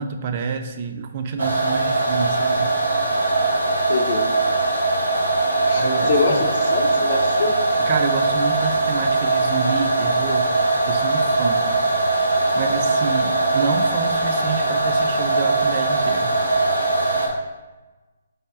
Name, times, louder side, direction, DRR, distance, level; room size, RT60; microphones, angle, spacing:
voice 1, 0.0-2.7 5.8-6.5 7.8-10.5 10.9-11.7 12.5-16.3, right 5 dB, 40° right, 7 dB, 0.4 m, -28 dB
sound 1, 1.4-17.3, right 2 dB, 85° right, 0.9 m, -21 dB
voice 2, 3.9-4.2 5.7-7.5, left 4 dB, 55° left, 2 dB, 0.7 m, -24 dB
4.8 x 2.3 x 4.6 m, 1.2 s
figure-of-eight pair, 135°, 0 cm